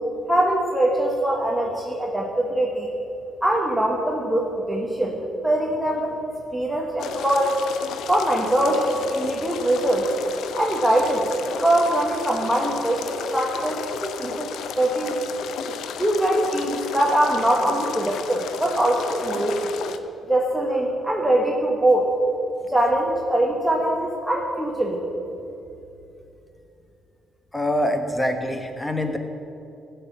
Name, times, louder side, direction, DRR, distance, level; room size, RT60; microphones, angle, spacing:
voice 1, 0.3-2.9 3.4-6.1 6.5-7.6 8.1-10.1 10.6-15.2 16.0-19.7 20.3-22.1 22.7-25.1, right 1 dB, 5° right, -2 dB, 1.4 m, -22 dB
sound 1, 7.0-20.0, left 7 dB, 80° left, 0.6 m, -33 dB
voice 2, 27.5-29.2, left 1 dB, 10° left, 5 dB, 1.3 m, -24 dB
15.0 x 5.8 x 7.4 m, 2.8 s
cardioid pair, 90°, 0 cm